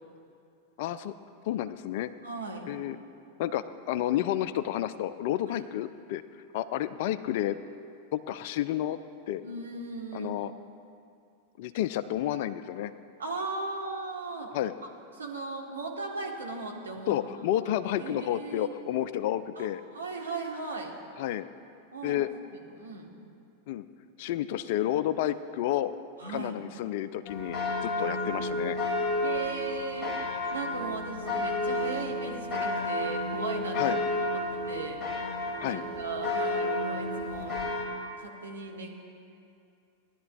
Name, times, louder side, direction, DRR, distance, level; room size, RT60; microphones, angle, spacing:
voice 1, 0.8-1.1 1.5-2.1 2.7-3.0 3.4-6.2 6.5-7.6 8.1-9.0 9.3-9.4 10.1-10.5 11.6-12.9 14.5-14.7 17.1-19.8 21.2-21.5 22.0-22.3 23.7-23.9 24.2-25.9 26.3-27.6 27.8-28.8 33.7-34.0 35.6-35.8, left 12 dB, 50° left, 13 dB, 0.4 m, -30 dB
voice 2, 2.2-2.7 5.5-5.6 9.4-10.4 13.2-14.5 15.2-17.1 18.0-18.7 19.5-19.7 19.9-20.9 21.9-23.1 26.2-26.6 29.2-30.1 30.5-35.0 35.6-37.6 38.2-38.9, right 3 dB, 75° right, -1 dB, 1.5 m, -37 dB
sound 1, 27.3-37.8, left 1 dB, 15° left, 2.3 m, -31 dB
18.5 x 11.0 x 2.4 m, 2.5 s
figure-of-eight pair, 90°, 0 cm